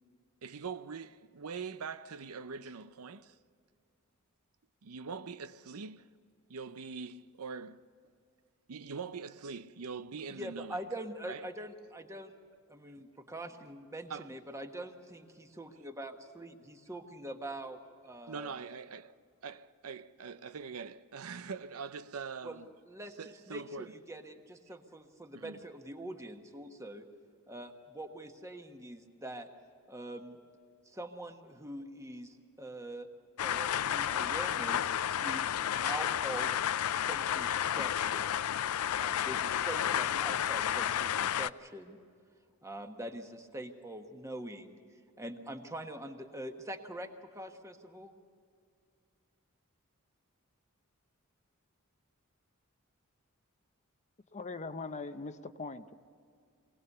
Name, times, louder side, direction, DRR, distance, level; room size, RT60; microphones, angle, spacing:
voice 1, 0.4-3.4 4.8-6.1 6.5-7.8 8.7-10.8 11.2-11.4 12.9-13.0 14.1-14.3 18.3-19.2 19.4-22.7 23.2-23.9 25.3-25.6, right 5 dB, 85° right, 0.6 m, -43 dB
voice 2, 10.3-12.3 12.7-18.5 22.4-27.0 27.5-29.5 29.9-30.4 30.8-33.1 33.4-34.9 35.2-35.5 35.8-36.5 36.9-38.4 39.0-42.0 42.6-44.8 45.2-48.1, right 1 dB, 15° right, 1.4 m, -44 dB
sound 1, 33.4-41.5, left 10 dB, 75° left, 0.4 m, -31 dB
voice 3, 54.3-55.9, left 3 dB, 35° left, 0.7 m, -41 dB
23.5 x 18.5 x 6.8 m
head